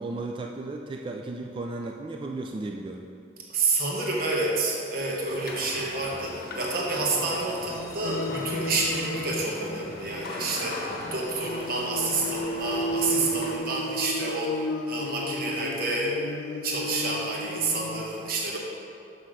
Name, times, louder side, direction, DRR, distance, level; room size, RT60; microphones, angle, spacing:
voice 1, 0.0-3.1, right 2 dB, 30° right, 2 dB, 0.3 m, -34 dB
voice 2, 3.5-16.2 16.6-18.6, right 3 dB, 55° right, -2 dB, 1.0 m, -29 dB
sound 1, 5.3-13.6, left 2 dB, 55° left, 0.9 m, -39 dB
sound 2, 8.0-10.7 11.0-18.0, left 1 dB, 80° left, 0.4 m, -34 dB
6.4 x 5.9 x 4.9 m, 2.7 s
head